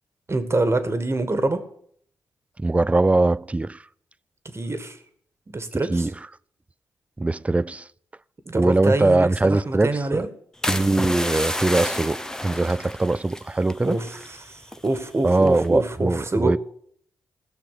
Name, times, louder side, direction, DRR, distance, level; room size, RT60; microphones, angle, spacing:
voice 1, 0.3-1.6 4.5-5.0 5.5-6.1 8.4-10.3 13.8-16.6, right 2 dB, 35° right, 1.8 m, -25 dB
voice 2, 2.6-3.8 5.9-6.1 7.2-7.9 8.5-10.3 10.7-14.0 15.2-16.6, right 2 dB, 15° right, 0.4 m, -21 dB
sound 1, 10.6-14.4 14.6-15.0 15.5-15.8, left 1 dB, 5° left, 0.8 m, -30 dB
16.0 x 5.8 x 7.6 m
hypercardioid pair, 40°, 8 cm